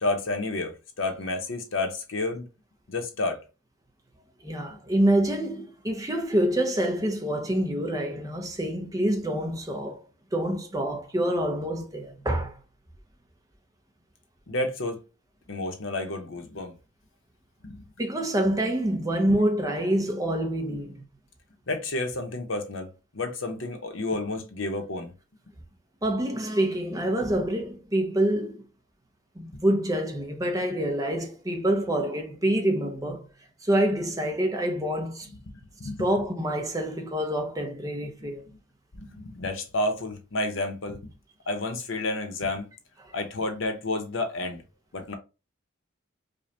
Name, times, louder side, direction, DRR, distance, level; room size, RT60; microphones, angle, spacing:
voice 1, 0.0-2.5 2.9-3.4 4.7-4.8 14.5-15.0 15.5-16.8 17.6-17.8 21.7-22.9 23.1-25.1 29.5-29.6 35.5-36.1 38.5-38.6 38.9-41.1 41.5-42.7 43.1-44.6 44.9-45.1, left 2 dB, 60° left, 0.9 m, -30 dB
voice 2, 4.4-10.0 10.3-12.5 18.0-21.0 26.0-28.6 29.4-33.2 33.6-35.3 36.0-38.4, right 1 dB, 15° right, 0.7 m, -26 dB
5.1 x 2.3 x 2.8 m
head